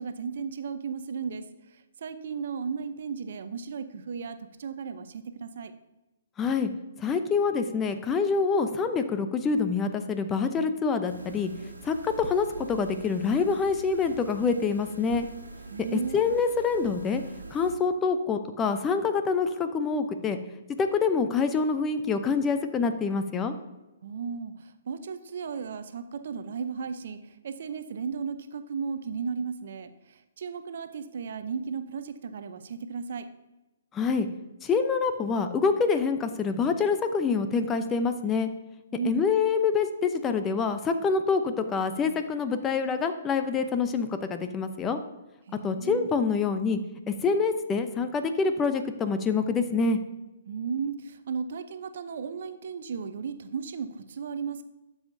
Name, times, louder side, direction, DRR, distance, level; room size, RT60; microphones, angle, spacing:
voice 1, 0.0-1.4 1.7-5.7 15.7-16.2 24.0-33.3 38.9-39.2 45.5-46.1 50.5-54.7, right 6 dB, 60° right, 10 dB, 0.7 m, -35 dB
voice 2, 6.4-6.7 7.0-11.5 11.8-15.3 15.9-17.2 17.5-20.4 20.8-23.5 33.9-34.3 34.6-38.5 39.0-45.0 45.6-46.8 47.1-50.0, left 5 dB, 15° left, 8 dB, 0.7 m, -26 dB
sound 1, 11.1-17.7, right 2 dB, 85° right, 1.5 m, -45 dB
12.5 x 7.2 x 2.7 m, 1.1 s
figure-of-eight pair, 125°, 0 cm